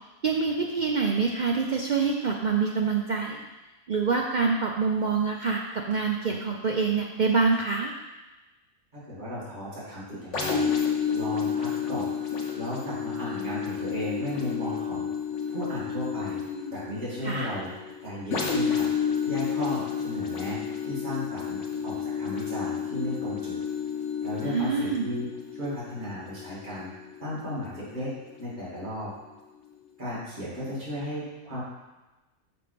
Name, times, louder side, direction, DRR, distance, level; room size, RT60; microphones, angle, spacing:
voice 1, 0.2-3.4 3.9-7.9 17.2-17.5 24.4-25.1, right 5 dB, 80° right, 0 dB, 0.4 m, -26 dB
voice 2, 8.9-10.7 11.1-12.2 12.5-15.1 15.5-16.4 16.7-17.7 18.0-18.9 19.2-23.6 24.2-25.3 25.5-26.9 27.2-28.1 28.4-29.1 30.0-31.6, left 1 dB, 35° right, -10 dB, 2.7 m, -35 dB
sound 1, 10.3-27.9 28.4-28.5, left 7 dB, 55° left, 1.4 m, -31 dB
6.9 x 4.4 x 5.1 m, 1.1 s
omnidirectional pair, 1.5 m